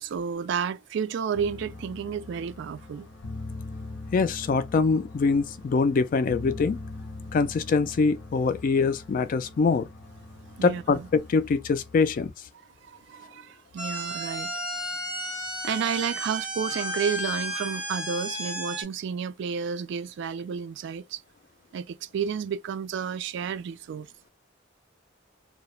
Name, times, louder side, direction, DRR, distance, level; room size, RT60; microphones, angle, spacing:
voice 1, 0.0-3.1 10.6-11.1 12.9-14.5 15.6-21.2 21.7-24.1, right 7 dB, 65° right, 0.3 m, -31 dB
sound 1, 1.3-12.3, left 2 dB, 75° left, 0.7 m, -42 dB
voice 2, 4.1-6.8 7.3-9.9 10.6-12.3, left 4 dB, 45° left, 0.3 m, -24 dB
sound 2, 13.8-18.8, equal, 5° right, 0.7 m, -33 dB
2.3 x 2.0 x 2.9 m
head